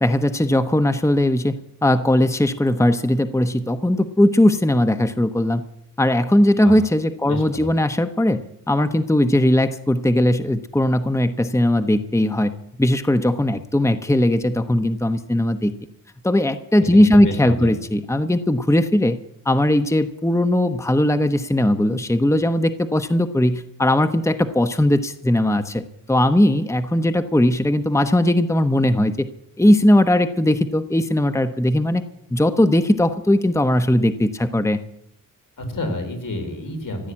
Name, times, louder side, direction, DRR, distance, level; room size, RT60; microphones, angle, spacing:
voice 1, 0.0-5.6 6.0-12.5 12.8-15.7 16.2-19.2 19.4-25.8 26.1-29.3 29.6-32.0 32.3-34.8, left 1 dB, 10° left, 9 dB, 1.0 m, -19 dB
voice 2, 7.2-7.7 16.8-17.7 35.6-37.1, left 2 dB, 75° left, 5 dB, 4.5 m, -29 dB
15.0 x 9.7 x 8.7 m, 0.76 s
cardioid pair, 65°, 33 cm